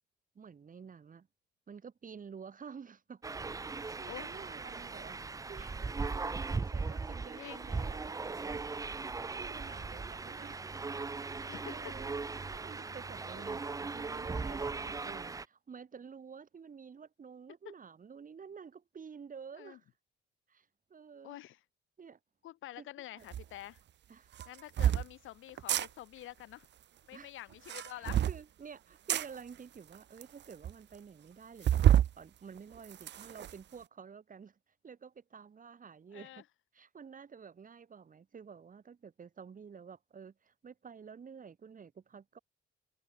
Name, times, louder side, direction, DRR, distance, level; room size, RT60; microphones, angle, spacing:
voice 1, 0.3-1.3 1.7-3.2 3.6-5.9 6.2-8.7 9.0-10.6 11.4-19.8 20.5-21.4 22.0-22.2 22.8-23.3 24.1-24.3 27.1-27.3 27.9-34.6 34.8-36.4 36.7-42.4, right 6 dB, 45° right, 4.4 m, -51 dB
sound 1, 3.2-15.4, right 4 dB, 15° right, 0.5 m, -38 dB
voice 2, 4.1-4.4 7.4-7.6 11.5-12.0 17.6-17.7 19.6-19.8 21.2-21.6 22.4-23.8 24.5-26.7 27.1-28.3 36.1-36.4, left 14 dB, 85° left, 4.0 m, -47 dB
sound 2, 23.3-23.4 24.3-25.0 25.6-25.9 27.5-28.4 29.1-29.3 29.9-30.0 30.2-30.3 30.6-30.7 31.6-32.1 32.6-33.5, right 11 dB, 60° right, 1.1 m, -27 dB
cardioid pair, 90°, 20 cm